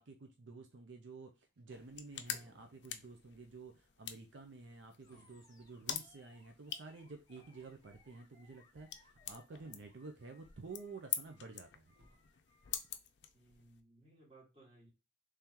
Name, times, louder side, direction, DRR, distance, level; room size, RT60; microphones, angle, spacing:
voice 1, 0.0-11.9, right 3 dB, 80° right, 5 dB, 0.6 m, -51 dB
sound 1, 1.1-3.8 4.3-4.4 4.7-8.3 9.5-10.3 11.1-11.2 11.9-12.5, equal, 55° right, 1.2 m, -68 dB
sound 2, 1.7-13.8, left 10 dB, 70° left, 0.4 m, -47 dB
Animal, 5.0-13.0, left 2 dB, 20° left, 0.9 m, -69 dB
voice 2, 13.3-14.9, right 2 dB, 30° right, -3 dB, 1.8 m, -62 dB
3.7 x 3.2 x 2.9 m, 0.27 s
head